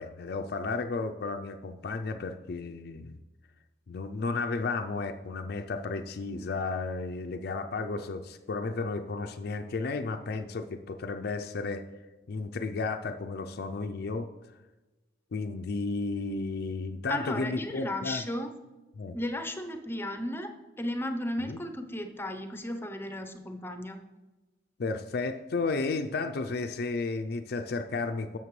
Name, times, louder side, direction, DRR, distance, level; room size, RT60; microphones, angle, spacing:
voice 1, 0.0-3.2 3.9-11.8 12.3-14.3 15.3-18.2 19.0-19.2 21.4-21.6 24.8-28.4, left 3 dB, 60° left, 5 dB, 0.4 m, -33 dB
voice 2, 17.1-18.5 19.1-20.5 20.8-24.0, left 1 dB, 15° left, 6 dB, 0.7 m, -34 dB
11.0 x 7.4 x 3.2 m, 1.1 s
head